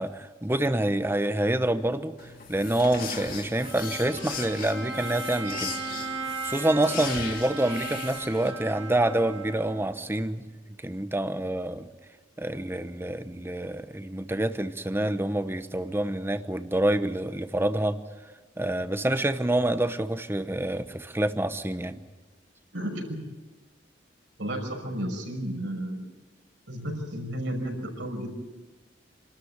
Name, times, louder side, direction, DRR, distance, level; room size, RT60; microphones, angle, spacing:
voice 1, 0.0-6.1 6.4-10.4 10.8-11.9 12.4-18.0 18.6-22.0, right 1 dB, 15° right, 11 dB, 1.0 m, -27 dB
sound 1, 2.2-8.5, left 5 dB, 50° left, 3.0 m, -38 dB
Bowed string instrument, 3.6-10.0, right 3 dB, 35° right, 2.5 m, -37 dB
voice 2, 22.7-23.2 24.4-26.1 26.7-28.3, equal, 70° right, 2 dB, 6.0 m, -32 dB
27.5 x 13.0 x 9.6 m, 1.2 s
head